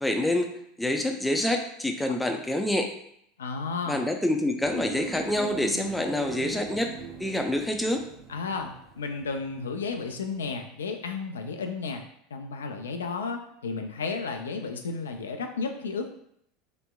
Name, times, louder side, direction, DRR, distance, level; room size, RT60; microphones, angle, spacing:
voice 1, 0.0-2.9 3.9-6.9 7.2-8.0, left 1 dB, 5° left, 4 dB, 0.5 m, -27 dB
voice 2, 3.4-4.0 8.3-12.0 12.3-16.1, left 4 dB, 90° left, 5 dB, 0.3 m, -33 dB
sound 1, 4.6-10.0 10.2-10.3, right 4 dB, 35° right, 1.1 m, -41 dB
3.3 x 2.9 x 2.2 m, 0.70 s
hypercardioid pair, 90°, 0 cm